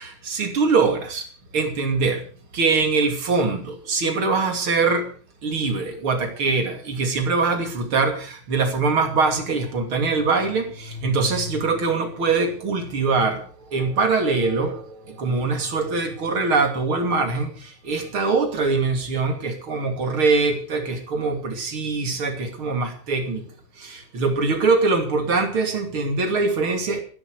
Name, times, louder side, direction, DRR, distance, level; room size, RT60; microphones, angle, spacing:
voice 1, 0.3-1.3 1.5-2.2 2.5-5.1 5.4-13.4 13.7-23.4 23.8-27.0, right 4 dB, 85° right, 3.7 m, -23 dB
15.5 x 12.5 x 6.4 m
omnidirectional pair, 2.2 m